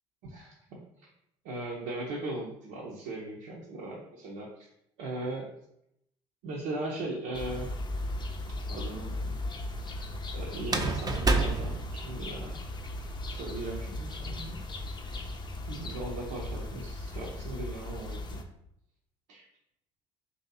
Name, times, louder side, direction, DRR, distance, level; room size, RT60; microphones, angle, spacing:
voice 1, 0.2-0.8 1.4-4.7 5.0-5.5 6.4-7.7 8.7-9.3 10.3-12.6 13.3-14.6 15.7-18.4 19.3-19.5, right 2 dB, 75° right, -3 dB, 0.7 m, -38 dB
sound 1, 7.3-18.4, left 1 dB, 30° left, 0.6 m, -37 dB
sound 2, 7.5-8.2 10.6-12.6, right 3 dB, 25° right, 0.6 m, -29 dB
3.0 x 2.8 x 4.0 m, 0.76 s
hypercardioid pair, 65°, 14 cm